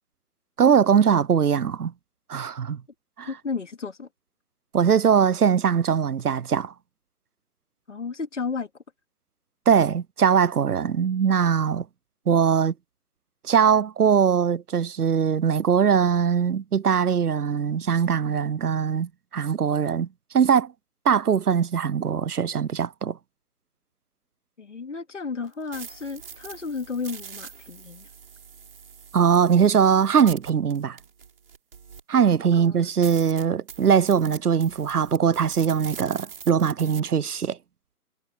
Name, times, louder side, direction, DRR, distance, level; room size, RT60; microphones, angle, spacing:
voice 1, 0.6-1.9 2.3-2.8 3.2-3.3 4.7-6.7 9.7-11.9 12.3-12.7 13.4-20.1 20.3-20.7 21.1-23.2 29.1-31.0 32.1-37.6, right 7 dB, 75° right, 0.6 m, -21 dB
voice 2, 3.3-4.1 7.9-8.7 24.6-28.1 32.5-32.9, left 4 dB, 50° left, 2.7 m, -33 dB
sound 1, 25.5-32.2 32.7-32.8 33.0-37.0, right 6 dB, 35° right, 6.7 m, -43 dB
figure-of-eight pair, 150°, 46 cm